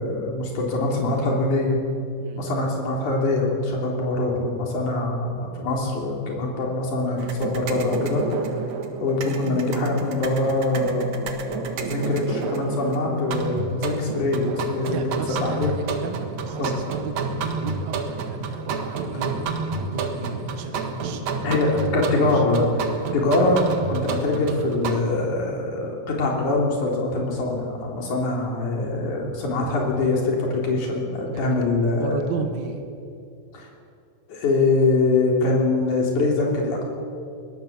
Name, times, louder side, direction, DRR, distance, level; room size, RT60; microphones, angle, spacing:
voice 1, 0.0-1.8 2.4-8.2 9.0-15.0 15.4-15.7 16.6-16.7 21.4-23.6 23.9-32.2 33.5-33.7 34.3-36.8, left 2 dB, 80° left, -1 dB, 4.8 m, -23 dB
sound 1, 7.2-25.0, right 4 dB, 70° right, 2.8 m, -30 dB
voice 2, 14.9-21.8 22.1-22.4 31.3-31.6 32.0-32.9, right 4 dB, 40° right, 5 dB, 2.0 m, -34 dB
23.5 x 19.0 x 7.5 m, 2.5 s
omnidirectional pair, 3.5 m